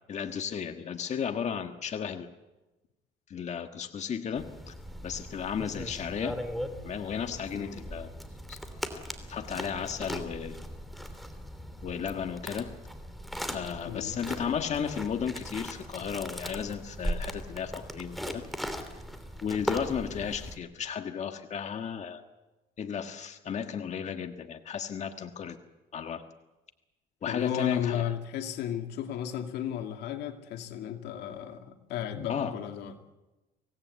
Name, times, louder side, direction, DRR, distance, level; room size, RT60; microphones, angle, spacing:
voice 1, 0.1-2.3 3.3-4.7 5.0-6.4 6.8-8.1 8.5-8.6 9.3-10.6 11.8-12.7 13.5-18.4 19.4-22.2 22.8-25.6 25.9-26.2 27.2-28.1 32.3-32.5, left 7 dB, 45° left, 6 dB, 1.6 m, -34 dB
sound 1, 4.3-20.6, equal, ahead, 2.9 m, -39 dB
voice 2, 27.3-32.9, left 10 dB, 80° left, 5 dB, 2.3 m, -34 dB
25.0 x 18.0 x 8.2 m, 1.1 s
cardioid pair, 110°, 17 cm